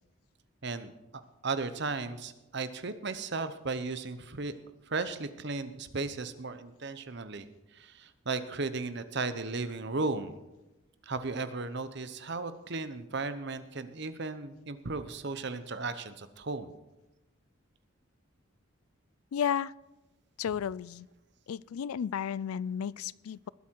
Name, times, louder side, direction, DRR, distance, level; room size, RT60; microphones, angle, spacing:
voice 1, 0.6-0.9 1.4-4.5 4.9-7.5 7.7-10.4 11.1-16.7, right 3 dB, 55° right, 11 dB, 0.9 m, -35 dB
voice 2, 19.3-19.7 20.4-21.1 21.5-23.5, left 8 dB, 90° left, 22 dB, 0.4 m, -33 dB
20.0 x 8.3 x 4.6 m, 0.99 s
head